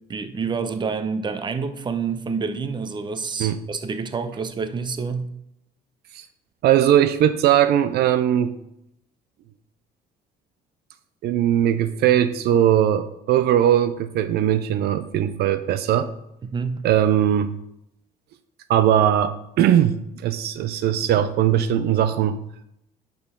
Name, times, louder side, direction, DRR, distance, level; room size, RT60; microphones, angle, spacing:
voice 1, 0.1-5.3 16.4-16.8, right 5 dB, 25° right, 0.7 m, -28 dB
voice 2, 6.6-8.6 11.2-16.1 16.8-17.5 18.7-22.4, right 10 dB, 70° right, 0.6 m, -19 dB
10.0 x 6.1 x 3.7 m
cardioid pair, 110°, 17 cm